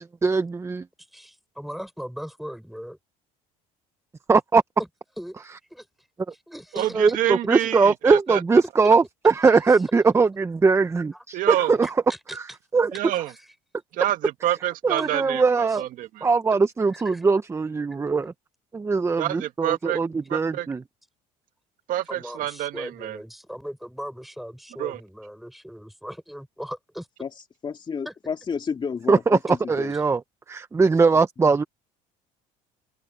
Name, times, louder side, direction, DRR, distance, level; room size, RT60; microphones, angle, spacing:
voice 1, 0.2-0.8 4.3-4.6 6.9-11.9 12.3-12.4 12.7-12.9 14.8-15.8 16.2-18.3 18.7-20.8 29.1-30.2 30.5-31.6, right 4 dB, 20° right, 0.9 m, -21 dB
voice 2, 1.1-3.0 4.8-4.9 5.2-5.4 5.7-5.8 6.5-7.0 9.5-9.6 11.1-11.2 11.8-12.4 15.0-15.3 15.7-15.8 16.9-17.2 22.1-27.1 28.0-28.1, equal, ahead, 4.6 m, -38 dB
voice 3, 6.7-8.4 11.3-11.7 12.9-13.3 13.9-16.3 19.2-20.0 20.3-20.7 21.9-23.2 24.8-25.0, right 13 dB, 65° right, 2.1 m, -27 dB
voice 4, 27.6-29.9, left 6 dB, 30° left, 3.0 m, -31 dB
supercardioid pair, 105°, 15 cm